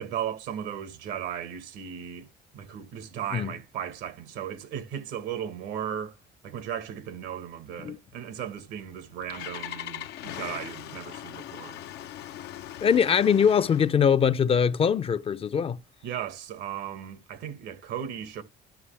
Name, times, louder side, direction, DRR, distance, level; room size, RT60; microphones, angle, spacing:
voice 1, 0.0-2.3 2.5-6.2 6.4-11.8 16.0-18.4, right 9 dB, 90° right, 1.5 m, -36 dB
Engine starting, 8.8-14.0, left 13 dB, 80° left, 0.7 m, -40 dB
voice 2, 12.8-15.8, left 7 dB, 35° left, 0.5 m, -22 dB
13.0 x 5.5 x 3.4 m
cardioid pair, 110°, 17 cm